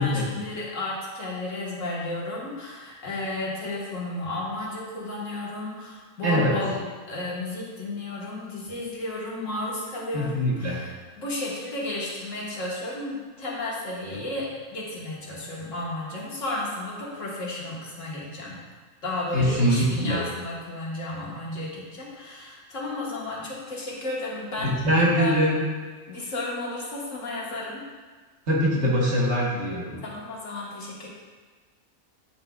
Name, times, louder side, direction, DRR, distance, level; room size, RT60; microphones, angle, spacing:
voice 1, 0.0-6.8 7.1-18.6 19.0-24.8 25.2-25.4 26.1-27.8 30.0-31.1, left 2 dB, 70° left, -4 dB, 1.7 m, -33 dB
voice 2, 6.2-6.5 10.1-10.8 19.3-20.2 24.6-25.6 28.5-30.0, equal, 60° right, -4 dB, 1.5 m, -23 dB
8.7 x 5.8 x 2.3 m, 1.4 s
omnidirectional pair, 1.3 m